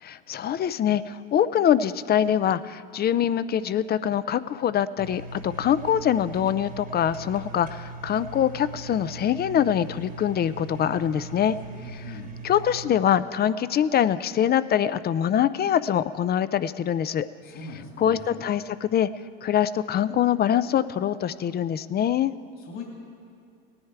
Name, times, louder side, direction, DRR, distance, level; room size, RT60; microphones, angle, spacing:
voice 1, 0.0-11.6 11.9-12.1 12.4-17.3 18.0-19.1 19.4-22.3, left 9 dB, 30° left, 16 dB, 0.4 m, -24 dB
sound 1, 5.0-12.9, right 3 dB, 25° right, 1.2 m, -40 dB
voice 2, 11.7-12.3 17.4-18.3 22.6-22.8, left 4 dB, 55° left, -1 dB, 2.6 m, -40 dB
18.0 x 9.8 x 4.7 m, 2.3 s
supercardioid pair, 85°, 32 cm